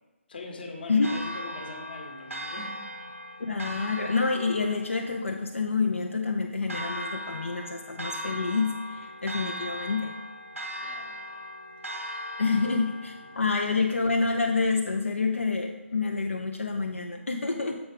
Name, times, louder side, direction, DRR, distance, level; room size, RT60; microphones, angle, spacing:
voice 1, 0.3-2.8 10.8-11.4 12.4-12.7, left 2 dB, 45° left, 3 dB, 1.2 m, -42 dB
Church bell, 1.0-15.0, equal, 90° right, 1.4 m, -39 dB
voice 2, 3.4-10.2 12.4-17.8, left 4 dB, 70° left, 2 dB, 0.6 m, -28 dB
7.2 x 4.9 x 5.0 m, 1.2 s
figure-of-eight pair, 150°, 7 cm